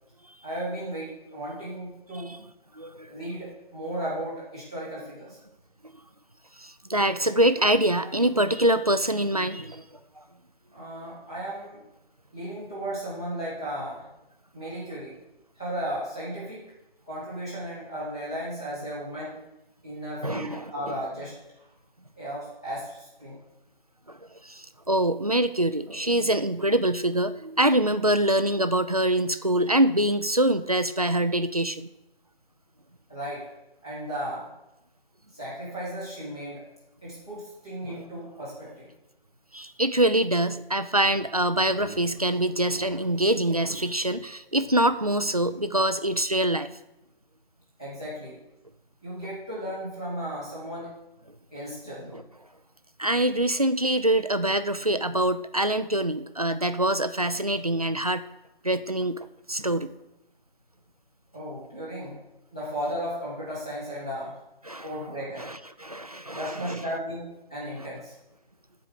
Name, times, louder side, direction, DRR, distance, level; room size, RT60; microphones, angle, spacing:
voice 1, 0.4-2.3 3.1-5.4 10.7-11.8 12.3-14.0 14.5-15.2 15.6-16.6 17.1-19.4 19.8-21.4 22.1-23.4 33.1-33.5 33.8-34.5 35.3-36.6 37.0-38.9 47.8-48.4 49.0-50.9 51.5-52.2 61.3-62.2 62.5-64.4 64.8-65.5 65.8-65.9 66.3-68.1, equal, 5° left, -10 dB, 0.9 m, -35 dB
voice 2, 2.8-3.1 6.6-10.0 20.2-20.7 24.1-24.2 24.4-31.9 37.8-38.1 39.5-46.7 52.1-52.2 53.0-58.3 58.6-59.9 64.7-64.9 65.4-66.8, right 1 dB, 40° right, 11 dB, 0.4 m, -24 dB
Laughter, 41.5-43.3 43.6-43.8 44.0-44.2 44.5-46.1, left 1 dB, 25° left, 1.7 m, -47 dB
12.0 x 4.8 x 6.5 m, 0.91 s
figure-of-eight pair, 175°, 30 cm